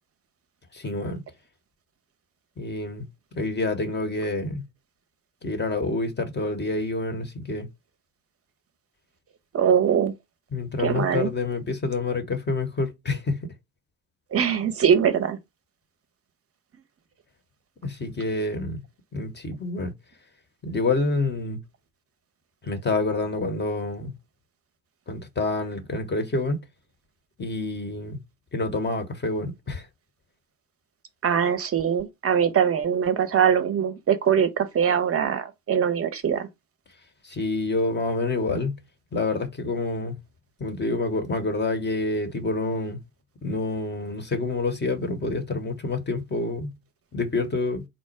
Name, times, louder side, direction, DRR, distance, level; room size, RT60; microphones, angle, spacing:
voice 1, 0.7-1.2 2.6-3.1 3.3-4.6 5.4-7.7 10.5-13.4 17.8-18.8 19.1-19.9 20.6-21.6 22.6-24.1 25.1-26.6 27.4-28.2 28.5-29.9 37.2-38.8 39.1-40.2 40.6-43.0 43.4-46.7 47.1-47.9, left 3 dB, 20° left, 1.1 m, -27 dB
voice 2, 9.5-10.1 10.8-11.3 14.3-15.4 31.2-36.5, right 8 dB, 30° right, 0.8 m, -22 dB
4.2 x 2.1 x 4.6 m
hypercardioid pair, 60°, 49 cm